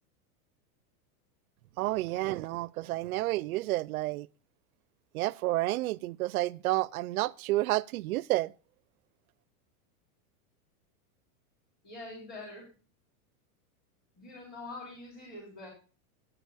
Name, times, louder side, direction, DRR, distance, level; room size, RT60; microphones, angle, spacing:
voice 1, 1.8-4.3 5.1-8.5, right 18 dB, 70° right, 0.5 m, -30 dB
voice 2, 11.8-12.7 14.2-15.7, left 2 dB, 25° left, 3.5 m, -44 dB
11.0 x 8.9 x 3.4 m
supercardioid pair, 170°, 44 cm